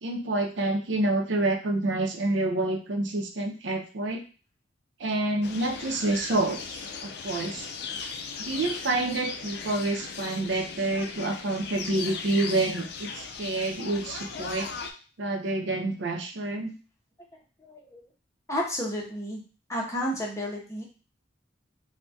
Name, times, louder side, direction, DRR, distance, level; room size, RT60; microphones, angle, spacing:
voice 1, 0.0-4.2 5.0-7.7 8.4-14.7 15.2-16.7, right 2 dB, 85° right, 4 dB, 0.6 m, -28 dB
sound 1, 5.4-14.9, left 5 dB, 65° left, 0.4 m, -38 dB
voice 2, 17.6-18.0 18.5-19.4 19.7-20.8, equal, 15° left, -1 dB, 0.6 m, -31 dB
3.4 x 2.1 x 2.6 m, 0.36 s
head